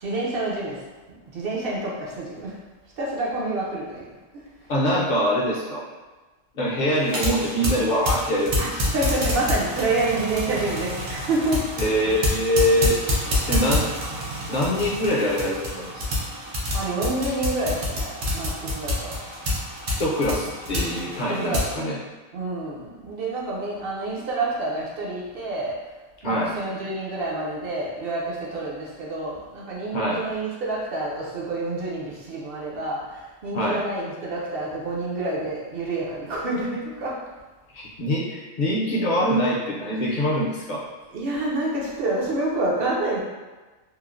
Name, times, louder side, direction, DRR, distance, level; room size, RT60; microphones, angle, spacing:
voice 1, 0.0-0.8 1.3-2.6 3.0-4.1 4.3-4.4 8.6-11.6 16.7-19.2 21.3-22.0 22.3-25.8 26.2-37.2 40.0-40.3 41.1-43.2, right 2 dB, 60° right, -5 dB, 0.7 m, -28 dB
voice 2, 4.7-5.9 6.5-8.6 11.8-13.0 13.5-13.9 14.5-16.1 19.9-22.0 26.2-26.5 29.9-30.2 33.5-33.8 37.7-40.9, equal, 50° left, -4 dB, 0.6 m, -24 dB
sound 1, 7.0-21.8, left 1 dB, 80° right, 1.1 m, -28 dB
3.1 x 2.0 x 2.4 m, 1.2 s
omnidirectional pair, 1.3 m